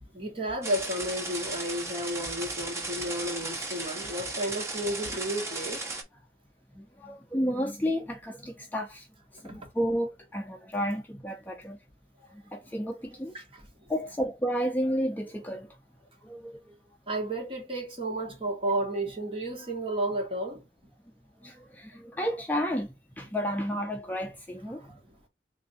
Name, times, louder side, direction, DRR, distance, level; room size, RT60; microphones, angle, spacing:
voice 1, 0.0-5.8 9.4-9.7 13.3-13.6 17.1-20.7 24.7-25.2, right 1 dB, 30° right, 1.5 m, -32 dB
sound 1, 0.6-6.0, right 2 dB, 15° right, 0.9 m, -36 dB
voice 2, 6.8-9.1 9.3-11.8 12.5-13.3 13.9-15.8 16.2-16.6 21.4-25.0, equal, 10° left, 0.4 m, -32 dB
3.3 x 2.6 x 4.1 m
head